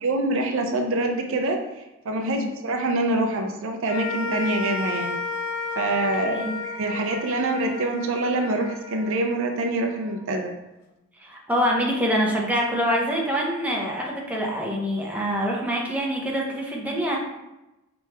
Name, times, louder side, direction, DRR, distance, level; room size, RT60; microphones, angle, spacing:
voice 1, 0.0-5.2 5.8-10.5, right 2 dB, 65° right, 4 dB, 0.5 m, -25 dB
sound 1, 3.9-10.3, left 4 dB, 75° left, 0.5 m, -32 dB
voice 2, 11.2-17.2, equal, 5° right, -3 dB, 0.7 m, -25 dB
4.5 x 3.0 x 3.4 m, 0.97 s
head